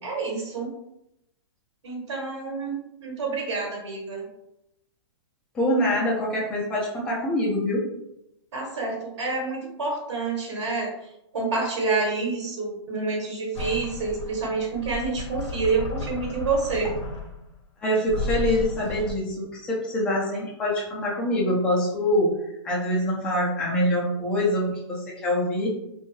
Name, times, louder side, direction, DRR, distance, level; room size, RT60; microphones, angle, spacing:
voice 1, 0.0-0.7 1.8-4.3 8.5-10.9 11.3-16.9, right 4 dB, 65° right, -2 dB, 1.1 m, -28 dB
voice 2, 5.5-7.8 17.8-22.3 22.6-25.7, left 1 dB, 5° left, -5 dB, 0.4 m, -25 dB
sound 1, 13.5-17.5 18.1-19.1, left 3 dB, 70° left, 0.6 m, -33 dB
2.6 x 2.2 x 3.1 m, 0.83 s
hypercardioid pair, 170°, 16 cm